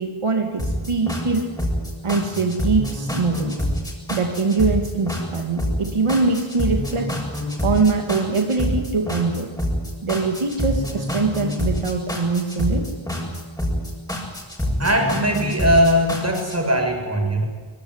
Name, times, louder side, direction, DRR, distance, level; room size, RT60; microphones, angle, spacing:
voice 1, 0.0-1.5 2.0-3.6 4.1-7.2 7.6-9.5 10.0-12.9, right 4 dB, 80° right, 4 dB, 2.5 m, -23 dB
sound 1, 0.6-16.6, equal, 5° left, 7.3 m, -26 dB
voice 2, 14.8-17.5, equal, 30° right, 2 dB, 7.3 m, -20 dB
24.5 x 19.5 x 9.8 m, 1.4 s
wide cardioid pair, 80°, 50 cm